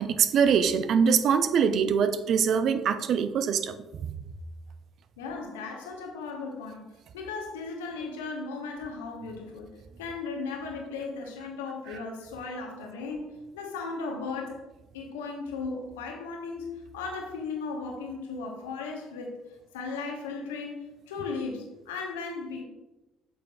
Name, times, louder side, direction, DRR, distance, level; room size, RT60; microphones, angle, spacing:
voice 1, 0.0-3.7 4.0-4.1, right 7 dB, 55° right, 11 dB, 0.5 m, -23 dB
voice 2, 5.2-9.7 10.0-14.6 14.9-19.4 19.7-22.7, left 4 dB, 75° left, 2 dB, 1.1 m, -36 dB
8.4 x 6.5 x 2.4 m, 1.0 s
figure-of-eight pair, 50°, 0 cm